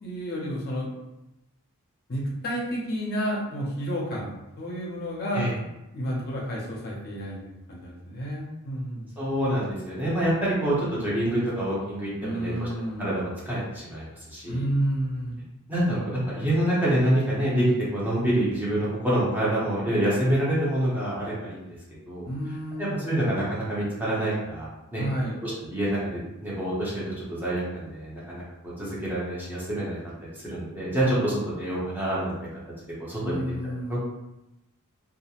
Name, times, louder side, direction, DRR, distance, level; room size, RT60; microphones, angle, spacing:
voice 1, 0.0-0.9 2.1-5.7 5.9-9.1 12.2-13.1 14.5-15.3 22.3-23.0 25.0-25.4 33.2-34.0, equal, 45° left, -4 dB, 0.6 m, -31 dB
voice 2, 9.2-12.7 13.0-14.6 15.7-17.7 17.9-21.6 22.1-22.3 22.8-24.7 24.9-25.0 25.4-30.0 30.4-32.3 33.1-33.4 33.9-34.0, right 1 dB, 10° right, -8 dB, 0.7 m, -27 dB
2.3 x 2.1 x 2.8 m, 0.92 s
head